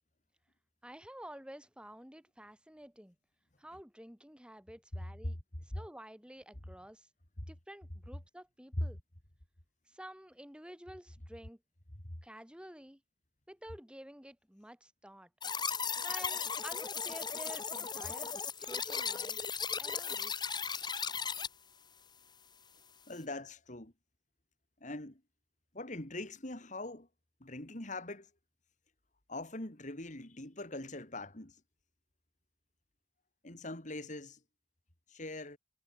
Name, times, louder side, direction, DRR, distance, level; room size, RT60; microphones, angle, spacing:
voice 1, 0.8-3.2 3.6-5.4 5.6-7.1 7.5-9.0 9.9-11.6 12.2-13.0 13.5-15.3 16.0-18.3 18.6-19.5 19.8-20.3, right 1 dB, 5° right, 4.2 m, -50 dB
sound 1, 15.4-21.5, left 6 dB, 25° left, 2.8 m, -36 dB
voice 2, 23.1-23.9 24.8-25.2 25.7-27.1 27.4-28.3 29.3-31.6 33.4-34.4 35.1-35.6, left 1 dB, 45° left, 3.0 m, -41 dB
head